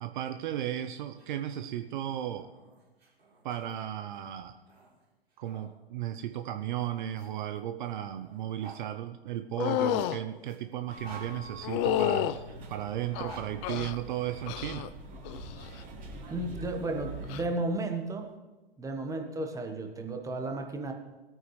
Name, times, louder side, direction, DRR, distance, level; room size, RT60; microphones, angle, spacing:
voice 1, 0.0-2.5 3.4-4.6 5.4-14.9, right 12 dB, 50° right, 9 dB, 0.7 m, -35 dB
sound 1, 1.1-5.7 6.6-8.8 9.7-12.1 12.9-14.5, right 3 dB, 90° right, 3.7 m, -54 dB
sound 2, 9.6-10.2 11.6-12.4 13.1-14.0 14.5-14.9 15.2-15.7 17.2-17.4, left 11 dB, 30° left, 0.5 m, -29 dB
sound 3, 10.9-17.4, right 2 dB, 25° right, 3.2 m, -44 dB
voice 2, 16.3-18.3 18.8-20.9, right 2 dB, 10° right, 3 dB, 1.4 m, -33 dB
19.0 x 9.3 x 3.3 m, 1.2 s
hypercardioid pair, 110°, 30 cm